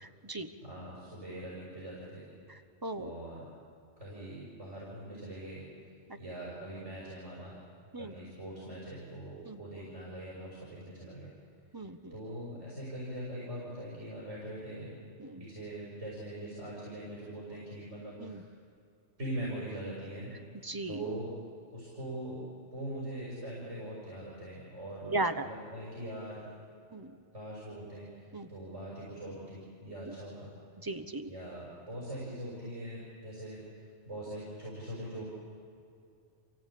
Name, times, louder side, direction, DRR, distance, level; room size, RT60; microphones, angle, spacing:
voice 1, 0.0-0.5 2.5-3.1 7.9-8.1 9.4-9.6 11.7-12.1 15.2-15.4 18.2-18.4 20.6-21.0 25.1-25.5 26.9-27.1 28.3-28.5 30.1-30.2 30.8-31.3, right 2 dB, 20° right, 9 dB, 1.0 m, -37 dB
voice 2, 0.6-2.3 3.0-3.5 4.0-5.7 6.2-7.6 8.0-11.3 12.1-14.9 15.4-18.4 19.2-20.3 20.9-21.3 21.7-22.4 22.7-26.4 27.3-30.5 31.3-35.2, right 1 dB, 90° right, -7 dB, 6.6 m, -42 dB
28.0 x 17.0 x 8.6 m, 2.5 s
omnidirectional pair, 1.2 m